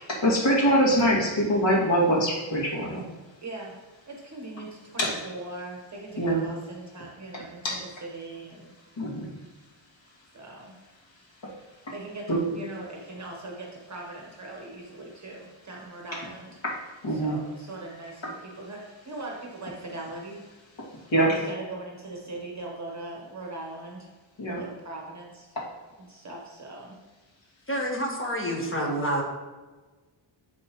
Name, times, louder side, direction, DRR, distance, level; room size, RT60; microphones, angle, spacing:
voice 1, 0.1-3.1 5.0-5.2 6.2-6.4 7.3-7.8 8.9-9.3 11.4-11.9 12.3-12.4 16.6-17.4 18.2-18.3 20.8-21.4 24.4-24.6 25.5-25.7, equal, 65° left, -6 dB, 2.5 m, -25 dB
voice 2, 3.4-3.7 4.1-7.6 8.0-8.7 10.3-10.8 11.9-16.6 17.1-18.2 18.5-20.4 21.3-24.1 24.5-25.6 26.1-27.0, right 2 dB, 35° right, -1 dB, 1.2 m, -40 dB
voice 3, 27.7-29.2, equal, 25° left, 0 dB, 1.5 m, -28 dB
12.0 x 4.2 x 3.1 m, 1.3 s
wide cardioid pair, 125°, 48 cm